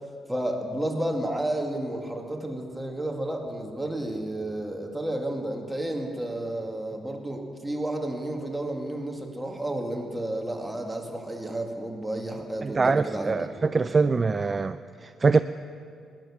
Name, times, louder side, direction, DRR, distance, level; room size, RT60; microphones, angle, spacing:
voice 1, 0.3-13.3 13.8-13.9, right 1 dB, 10° right, 1 dB, 2.1 m, -31 dB
voice 2, 12.6-15.4, right 4 dB, 30° right, 12 dB, 0.4 m, -24 dB
17.0 x 10.5 x 7.2 m, 2.3 s
cardioid pair, 90°, 0 cm